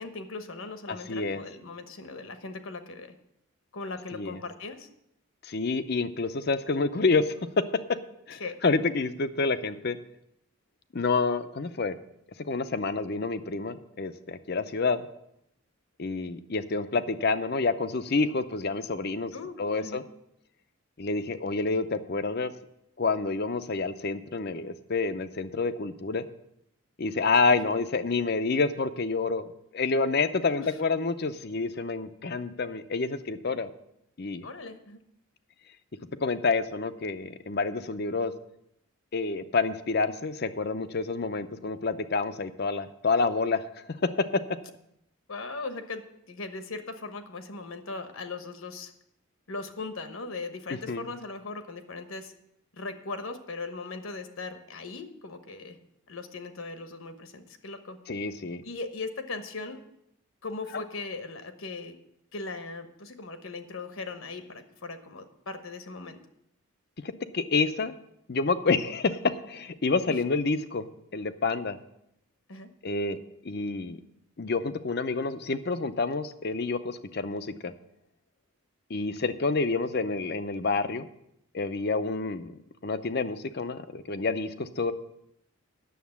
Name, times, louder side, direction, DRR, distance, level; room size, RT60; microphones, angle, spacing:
voice 1, 0.0-3.1 3.7-4.9 8.4-8.5 19.3-20.0 27.5-27.6 30.5-30.9 34.4-35.0 45.3-48.9 49.5-52.3 52.8-55.8 56.1-58.0 58.6-59.8 60.4-62.0 62.3-66.2 70.1-70.2 72.5-72.7, left 3 dB, 70° left, 8 dB, 1.1 m, -39 dB
voice 2, 0.9-1.4 4.1-4.4 5.4-8.0 8.3-10.0 10.9-12.0 12.4-15.0 16.0-20.0 21.0-22.5 23.0-26.3 27.0-29.5 29.7-33.7 34.2-34.5 36.2-38.3 39.1-44.4 50.9-51.0 58.1-58.6 67.0-67.9 68.3-70.9 71.1-71.8 72.8-73.2 73.4-74.0 74.4-77.7 78.9-81.1 81.5-84.9, left 4 dB, 45° left, 11 dB, 0.6 m, -28 dB
9.4 x 7.1 x 7.1 m, 0.79 s
head